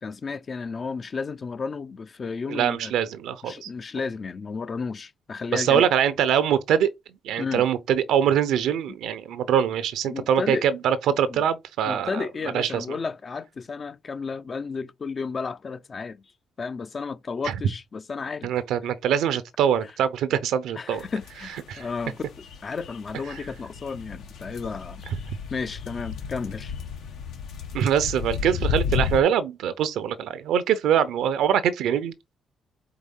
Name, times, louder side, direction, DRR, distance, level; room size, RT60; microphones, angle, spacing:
voice 1, 0.0-2.9 3.4-5.9 7.4-7.6 10.1-10.7 11.3-11.4 11.9-16.2 16.6-18.5 20.7-25.0 25.5-26.7, left 5 dB, 40° left, 0.5 m, -33 dB
voice 2, 2.5-3.7 5.5-6.9 7.2-12.3 12.5-12.8 17.4-17.5 18.4-21.0 21.7-21.8 25.3-25.4 27.7-32.4, right 9 dB, 85° right, 0.7 m, -23 dB
sound 1, 21.0-29.2, left 6 dB, 80° left, 1.2 m, -33 dB
4.7 x 3.7 x 5.5 m
cardioid pair, 90°, 0 cm